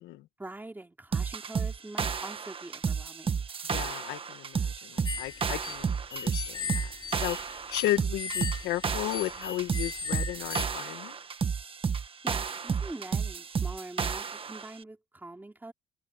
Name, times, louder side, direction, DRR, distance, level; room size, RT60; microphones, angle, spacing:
voice 1, 0.4-3.4 12.2-15.7, right 2 dB, 10° right, 3.3 m, -44 dB
sound 1, 1.1-14.7, right 6 dB, 30° right, 1.6 m, -32 dB
voice 2, 3.7-11.2, left 15 dB, 85° left, 1.9 m, -34 dB
sound 2, 5.0-10.6, left 6 dB, 25° left, 4.7 m, -37 dB
cardioid pair, 110°, 17 cm